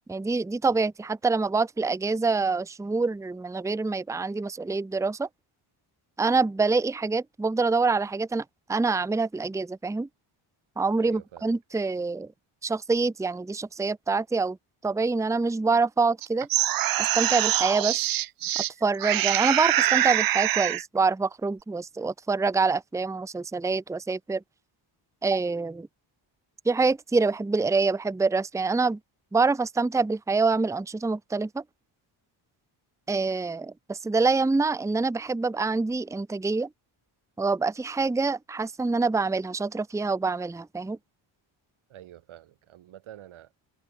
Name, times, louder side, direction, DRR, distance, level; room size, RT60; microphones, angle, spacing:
voice 1, 0.1-5.3 6.2-10.1 10.8-12.3 12.6-14.6 14.8-16.5 17.0-18.0 18.8-24.4 25.2-25.9 26.6-29.0 29.3-31.6 33.1-36.7 37.4-41.0, right 4 dB, 5° right, 0.7 m, -26 dB
voice 2, 11.0-11.5 41.9-43.5, right 12 dB, 75° right, 3.7 m, -47 dB
sound 1, 16.2-18.7 19.0-20.8, right 14 dB, 45° right, 0.5 m, -24 dB
cardioid pair, 155°, 49 cm